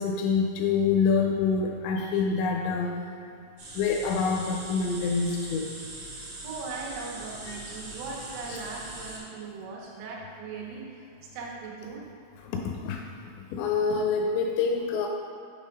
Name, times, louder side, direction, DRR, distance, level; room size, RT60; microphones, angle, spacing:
voice 1, 0.0-2.9 3.7-5.7 7.5-7.6 8.5-8.6 12.4-13.0 13.5-15.1, left 5 dB, 85° left, 2 dB, 2.6 m, -26 dB
sound 1, 3.6-9.2, right 2 dB, 70° right, 1.5 m, -41 dB
voice 2, 6.4-11.1 11.3-12.0, right 4 dB, 85° right, -3 dB, 3.5 m, -39 dB
8.3 x 3.4 x 5.1 m, 2.5 s
omnidirectional pair, 5.4 m